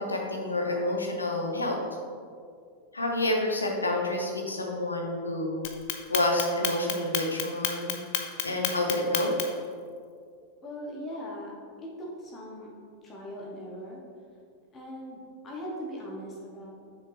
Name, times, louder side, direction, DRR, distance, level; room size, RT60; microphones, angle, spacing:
voice 1, 0.0-1.8 2.9-5.6 6.1-7.9 8.4-9.3, left 1 dB, 80° left, 1 dB, 1.1 m, -28 dB
Clock, 5.6-9.7, left 11 dB, 50° left, 0.7 m, -29 dB
voice 2, 10.6-11.5 11.8-11.9 12.2-12.7 13.0-14.0 14.7-16.7, equal, 25° left, -4 dB, 1.4 m, -39 dB
7.2 x 6.4 x 3.4 m, 2.2 s
figure-of-eight pair, 90°, 0 cm